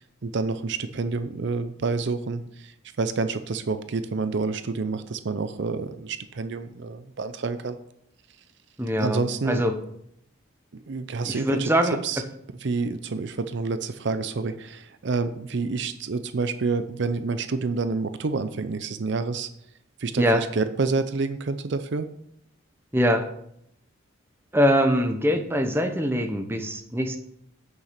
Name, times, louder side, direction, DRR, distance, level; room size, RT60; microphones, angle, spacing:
voice 1, 0.0-7.8 9.0-9.6 10.7-11.7 12.0-12.2 12.6-19.5 20.0-22.1, right 4 dB, 60° right, 11 dB, 0.5 m, -28 dB
voice 2, 8.8-9.8 11.3-12.0 20.2-20.4 22.9-23.2 24.5-27.2, equal, 10° right, 6 dB, 0.9 m, -23 dB
9.0 x 6.5 x 5.8 m, 0.72 s
head